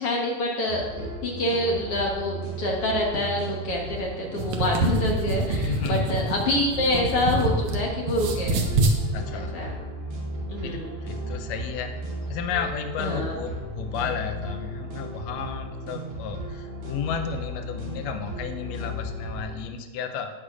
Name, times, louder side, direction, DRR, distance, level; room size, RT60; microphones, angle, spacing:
voice 1, 0.0-8.7 9.3-9.7 10.5-10.9 13.0-13.4, left 1 dB, 55° left, -1 dB, 1.8 m, -27 dB
sound 1, 0.7-19.6, right 1 dB, 90° right, 4.1 m, -35 dB
sound 2, 4.2-7.8 8.1-9.0, right 2 dB, 65° right, 2.0 m, -25 dB
voice 2, 5.6-6.1 9.1-9.6 10.6-12.0 12.3-20.3, left 7 dB, 75° left, 5 dB, 1.6 m, -33 dB
18.0 x 6.5 x 2.5 m, 1.3 s
omnidirectional pair, 3.7 m